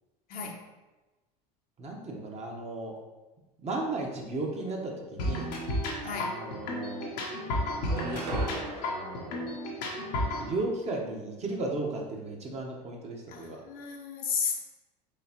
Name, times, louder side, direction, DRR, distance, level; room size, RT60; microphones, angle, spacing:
voice 1, 1.8-2.9 3.6-5.5 6.0-7.1 7.9-8.5 8.9-9.5 10.4-13.6, right 2 dB, 30° right, 0 dB, 1.0 m, -35 dB
sound 1, 5.2-10.5, left 1 dB, 80° left, 1.1 m, -32 dB
voice 2, 6.0-6.4 13.3-14.6, left 5 dB, 45° left, 1 dB, 0.8 m, -33 dB
sound 2, 6.1-6.2 6.5-7.3 7.7-10.3, right 2 dB, 85° right, 0.7 m, -41 dB
4.9 x 3.2 x 2.9 m, 1.1 s
hypercardioid pair, 85°, 21 cm